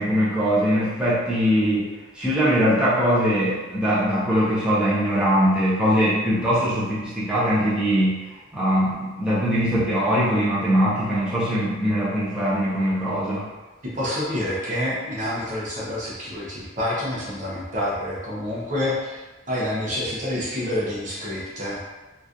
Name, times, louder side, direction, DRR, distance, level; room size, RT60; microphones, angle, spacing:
voice 1, 0.0-13.5, equal, 5° right, -10 dB, 0.8 m, -21 dB
voice 2, 13.8-21.8, left 1 dB, 40° right, -7 dB, 0.8 m, -28 dB
3.0 x 2.5 x 3.7 m, 1.2 s
head